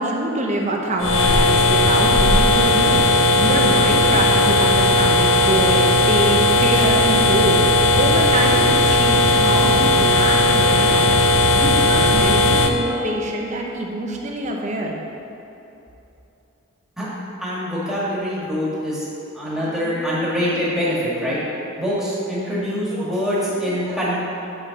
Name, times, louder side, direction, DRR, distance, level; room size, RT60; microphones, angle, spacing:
voice 1, 0.0-14.9, right 1 dB, 35° right, 0 dB, 0.8 m, -25 dB
sound 1, 1.0-12.7, left 2 dB, 70° left, 0.6 m, -16 dB
voice 2, 17.4-19.0 19.3-24.2, equal, ahead, -8 dB, 1.8 m, -24 dB
9.7 x 3.8 x 5.8 m, 3.0 s
head